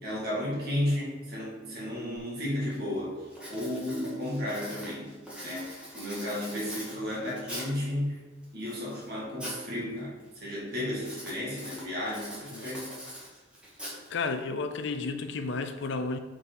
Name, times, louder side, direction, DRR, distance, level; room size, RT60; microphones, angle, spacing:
voice 1, 0.0-8.2 8.5-12.9, left 1 dB, 55° right, -5 dB, 2.0 m, -33 dB
Writing, 2.2-2.3 2.7-3.0 3.3-7.9 8.4-9.7 10.0-10.4 11.0-14.4, equal, 5° right, 1.6 m, -43 dB
voice 2, 14.1-16.2, left 3 dB, 65° left, 8 dB, 0.5 m, -32 dB
5.6 x 4.1 x 4.5 m, 1.3 s
head